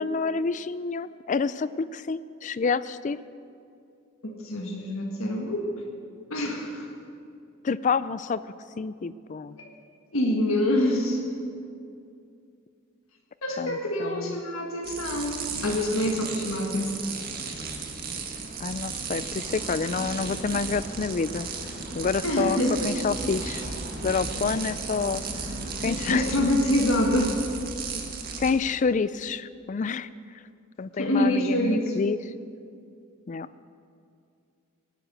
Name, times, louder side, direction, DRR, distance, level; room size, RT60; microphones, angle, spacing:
voice 1, 0.0-3.2 7.6-8.4 8.8-9.6 13.6-14.4 18.6-21.5 21.9-22.6 22.8-23.6 24.0-25.2 25.8-26.3 28.4-30.1 30.8-32.2 33.3-33.5, left 5 dB, 35° left, 16 dB, 0.4 m, -28 dB
voice 2, 4.2-5.7 6.3-6.8 9.6-9.7 10.1-11.2 13.4-17.0 22.2-23.0 25.8-27.4 31.0-32.0, left 1 dB, 80° left, 0 dB, 1.8 m, -26 dB
sound 1, 14.8-28.5, right 4 dB, 45° right, 1.7 m, -34 dB
18.5 x 9.5 x 6.3 m, 2.4 s
head